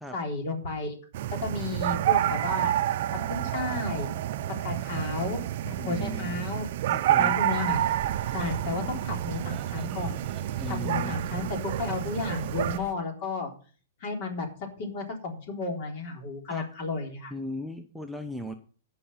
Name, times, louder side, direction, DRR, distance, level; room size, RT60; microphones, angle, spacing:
voice 1, 0.1-1.0 1.3-2.7 3.1-4.1 4.6-6.7 7.2-8.0 8.3-10.2 10.7-13.5 14.0-14.5 14.8-17.3, left 3 dB, 45° left, 2 dB, 3.7 m, -33 dB
sound 1, 1.1-12.8, right 12 dB, 55° right, 0.7 m, -29 dB
voice 2, 5.8-6.4 6.9-7.4 10.6-11.2 16.5-16.7 17.3-18.5, left 1 dB, ahead, 3 dB, 0.7 m, -37 dB
sound 2, 7.7-12.9, right 8 dB, 25° right, 1.5 m, -44 dB
15.0 x 5.6 x 5.6 m, 0.41 s
hypercardioid pair, 145°, 0 cm